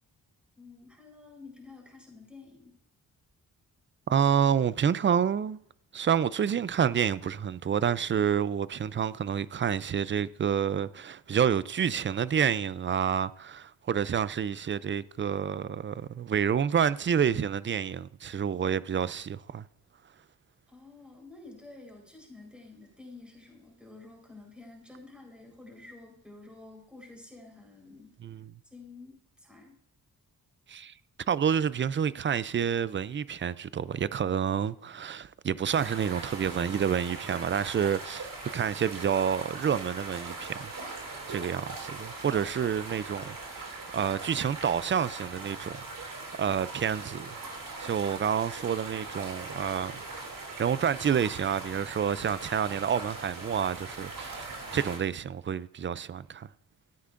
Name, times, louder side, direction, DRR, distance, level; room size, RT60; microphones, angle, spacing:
voice 1, 0.6-2.7 20.7-28.1 28.6-29.8, left 3 dB, 5° right, 4.1 m, -50 dB
voice 2, 4.1-5.6 5.9-19.7 28.2-28.5 30.7-30.9 31.3-40.7 41.3-47.4 47.8-50.0 50.4-56.5, right 8 dB, 35° right, 0.4 m, -29 dB
sound 1, 35.7-55.0, right 3 dB, 60° right, 2.6 m, -41 dB
13.5 x 9.5 x 2.5 m
cardioid pair, 80°, 37 cm